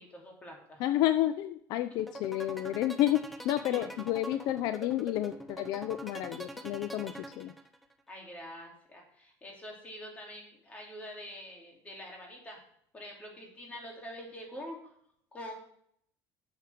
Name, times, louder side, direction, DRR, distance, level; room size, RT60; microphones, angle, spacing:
voice 1, 0.0-0.8 3.7-3.9 8.1-12.6 12.9-14.9 15.3-15.5, left 1 dB, 20° left, 0 dB, 2.8 m, -45 dB
voice 2, 0.8-7.5, left 13 dB, 70° left, 11 dB, 0.5 m, -30 dB
sound 1, 2.0-7.9, right 1 dB, ahead, 0.8 m, -43 dB
11.5 x 7.3 x 3.5 m, 0.68 s
cardioid pair, 155°, 7 cm